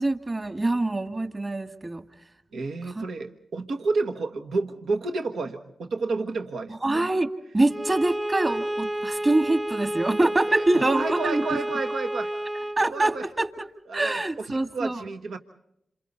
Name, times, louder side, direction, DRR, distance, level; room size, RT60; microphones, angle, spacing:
voice 1, 0.0-2.0 2.8-3.0 6.8-7.3 7.5-11.6 12.8-13.6 13.9-15.0, right 2 dB, 35° right, 7 dB, 2.0 m, -25 dB
voice 2, 2.5-6.7 10.5-12.3 12.9-13.3 13.9-15.4, right 3 dB, 80° right, 5 dB, 1.1 m, -30 dB
Bowed string instrument, 7.7-12.9, right 1 dB, 15° right, 0.8 m, -31 dB
27.5 x 27.5 x 4.1 m, 0.78 s
supercardioid pair, 40°, 0 cm